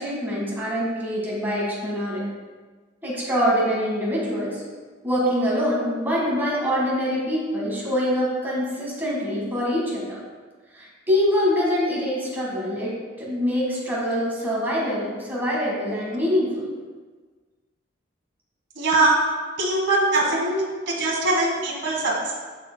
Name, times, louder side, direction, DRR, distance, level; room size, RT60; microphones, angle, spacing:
voice 1, 0.0-2.2 3.0-4.6 5.0-10.2 10.7-16.7 20.6-20.7, equal, 10° right, -5 dB, 1.6 m, -24 dB
voice 2, 18.8-19.2 19.6-22.3, right 2 dB, 70° right, -3 dB, 1.3 m, -22 dB
11.0 x 4.6 x 2.2 m, 1.4 s
head